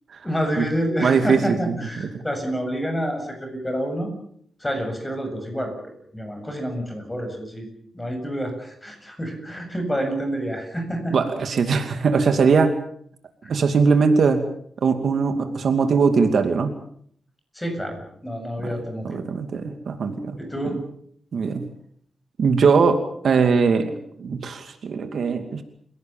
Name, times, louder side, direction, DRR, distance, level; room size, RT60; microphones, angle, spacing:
voice 1, 0.2-4.1 4.6-5.7 6.1-7.7 7.9-11.2 17.5-19.3 20.0-20.8, equal, 10° left, 5 dB, 7.7 m, -28 dB
voice 2, 1.0-2.2 11.1-12.8 13.5-14.4 14.8-16.7 18.6-18.7 19.0-20.4 21.3-21.6 22.4-25.6, right 5 dB, 60° right, 7 dB, 2.6 m, -21 dB
29.5 x 17.5 x 7.3 m, 0.65 s
wide cardioid pair, 135°, 0 cm